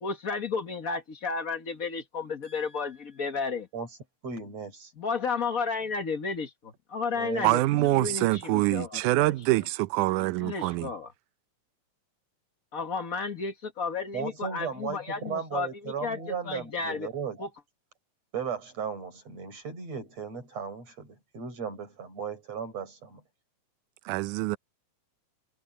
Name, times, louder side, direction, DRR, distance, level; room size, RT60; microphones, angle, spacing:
voice 1, 0.0-3.7 5.0-9.3 10.4-11.1 12.7-16.2 16.4-17.1 17.4-17.5, left 5 dB, 55° left, 0.9 m, -33 dB
voice 2, 4.2-4.9 7.1-8.2 8.9-9.0 14.1-17.5 18.3-23.2, right 6 dB, 50° right, 8.2 m, -36 dB
voice 3, 7.4-10.9 24.1-24.6, right 19 dB, 75° right, 2.0 m, -25 dB
omnidirectional pair, 3.9 m